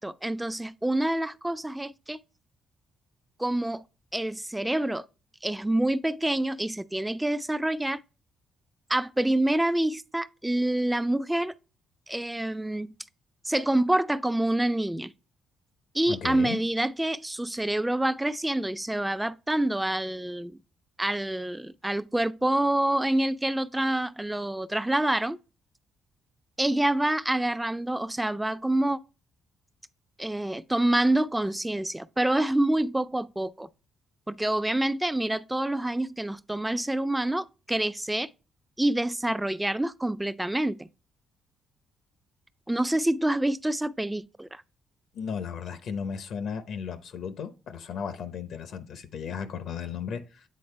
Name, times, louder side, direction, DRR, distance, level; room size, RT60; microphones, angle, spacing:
voice 1, 0.0-2.2 3.4-3.8 4.1-5.0 5.4-8.0 8.9-11.6 12.1-12.9 13.5-15.1 15.9-20.6 21.0-25.4 26.6-29.0 30.2-33.7 34.3-38.3 38.8-40.9 42.7-44.6, right 1 dB, 10° right, 0.4 m, -27 dB
voice 2, 16.1-16.6 45.1-50.4, left 6 dB, 70° left, 0.7 m, -35 dB
8.5 x 3.8 x 3.3 m
cardioid pair, 90°, 0 cm